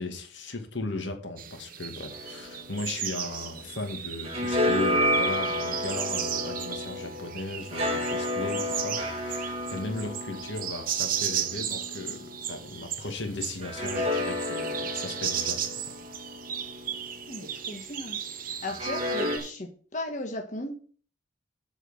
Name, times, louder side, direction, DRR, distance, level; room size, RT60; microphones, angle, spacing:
voice 1, 0.0-15.6 15.8-15.9, left 2 dB, 75° left, 5 dB, 2.1 m, -37 dB
sound 1, 1.4-19.5, right 9 dB, 50° right, 0.9 m, -36 dB
sound 2, 2.1-3.8 4.1-12.8 13.6-17.7 18.7-19.4, left 1 dB, 30° right, 2.4 m, -31 dB
voice 2, 17.3-18.2 18.5-20.7, left 1 dB, 40° left, 2 dB, 1.4 m, -36 dB
7.6 x 6.4 x 7.6 m, 0.43 s
head